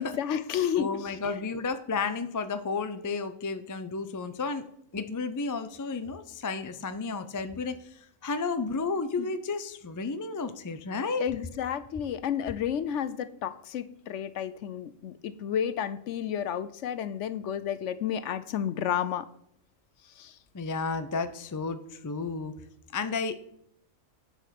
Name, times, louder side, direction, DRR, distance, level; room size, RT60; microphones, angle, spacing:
voice 1, 0.0-1.4 9.2-9.3 11.2-19.3 20.2-20.4, left 9 dB, 65° left, 14 dB, 0.8 m, -31 dB
voice 2, 0.8-4.6 4.9-11.2 20.5-22.5 22.9-23.3, left 4 dB, 30° left, 9 dB, 0.3 m, -32 dB
9.9 x 5.8 x 5.9 m, 0.71 s
omnidirectional pair, 1.5 m